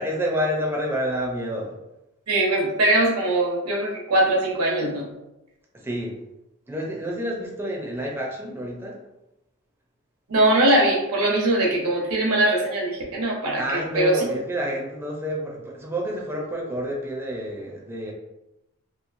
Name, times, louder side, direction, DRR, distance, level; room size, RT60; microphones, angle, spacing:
voice 1, 0.0-1.8 5.7-6.2 6.7-9.0 13.6-18.1, equal, 10° right, -2 dB, 0.4 m, -29 dB
voice 2, 2.3-5.1 10.3-14.2, right 1 dB, 90° right, -2 dB, 0.9 m, -21 dB
2.9 x 2.4 x 2.5 m, 0.93 s
head